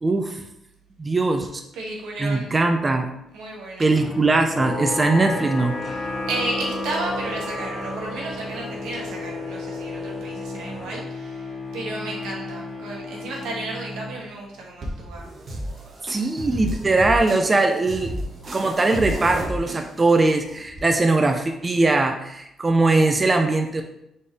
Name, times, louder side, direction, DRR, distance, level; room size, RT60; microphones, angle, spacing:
voice 1, 0.0-0.4 1.0-1.6 2.2-3.1 3.8-5.7 16.0-18.2 18.5-23.8, right 3 dB, 25° right, 4 dB, 0.4 m, -20 dB
voice 2, 1.7-2.5 3.3-3.9 5.9-15.3 17.5-17.6, right 2 dB, 90° right, -2 dB, 1.2 m, -33 dB
sound 1, 3.8-14.6, left 2 dB, 25° left, 1.4 m, -35 dB
sound 2, 4.5-10.9, left 2 dB, 40° left, 0.6 m, -33 dB
sound 3, 14.8-20.8, equal, 45° right, 1.0 m, -33 dB
4.3 x 3.3 x 3.5 m, 0.82 s
cardioid pair, 90°, 0 cm